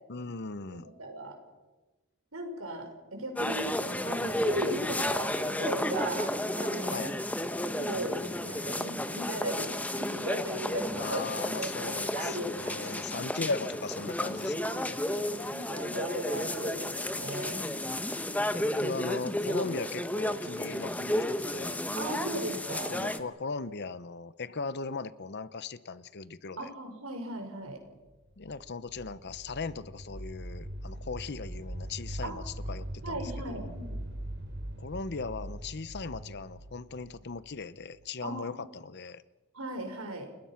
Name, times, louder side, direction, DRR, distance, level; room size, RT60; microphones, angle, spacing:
voice 1, 0.1-0.9 6.9-7.1 11.0-15.0 18.5-21.8 22.7-26.7 28.4-33.7 34.8-39.2, left 4 dB, 50° left, 15 dB, 0.8 m, -38 dB
voice 2, 0.7-1.4 2.3-7.1 7.8-11.2 11.6-12.8 14.7-14.8 15.2-17.7 22.0-22.9 26.6-27.8 32.2-32.4 33.0-34.0 38.2-38.6 39.5-40.3, right 1 dB, 75° right, 4 dB, 5.4 m, -37 dB
sound 1, 3.4-23.2, left 1 dB, 5° left, 1.1 m, -32 dB
sound 2, 28.2-38.1, right 1 dB, 55° right, 3.4 m, -41 dB
30.0 x 20.5 x 5.8 m, 1.2 s
head